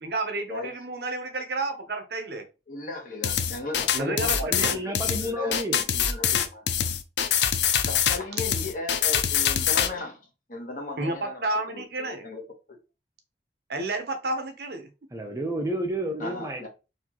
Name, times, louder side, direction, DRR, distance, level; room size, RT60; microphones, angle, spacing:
voice 1, 0.0-2.5 3.9-4.7 11.0-12.3 13.7-14.9, right 2 dB, 65° right, 0.9 m, -31 dB
voice 2, 2.7-5.6 5.9-6.6 7.9-10.2 10.5-11.5 11.7-12.5 16.2-16.7, left 2 dB, 50° left, 1.2 m, -36 dB
sound 1, 3.2-9.9, left 8 dB, 80° left, 0.5 m, -24 dB
voice 3, 4.0-5.8 15.1-16.7, right 1 dB, 15° right, 0.5 m, -31 dB
4.3 x 2.7 x 2.9 m
head